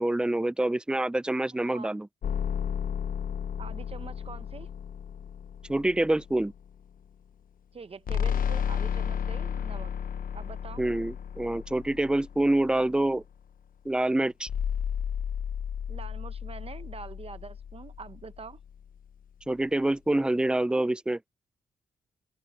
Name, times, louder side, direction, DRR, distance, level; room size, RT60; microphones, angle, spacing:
voice 1, 0.0-2.1 5.7-6.5 10.8-13.2 13.9-14.5 19.5-21.2, right 1 dB, 5° right, 0.5 m, -26 dB
sound 1, 2.2-6.7 8.1-12.9 14.5-18.8, left 8 dB, 65° left, 1.0 m, -33 dB
voice 2, 3.6-4.7 7.7-9.9 10.3-10.8 15.9-18.6, right 5 dB, 40° right, 0.8 m, -44 dB
open air
cardioid pair, 70°, 16 cm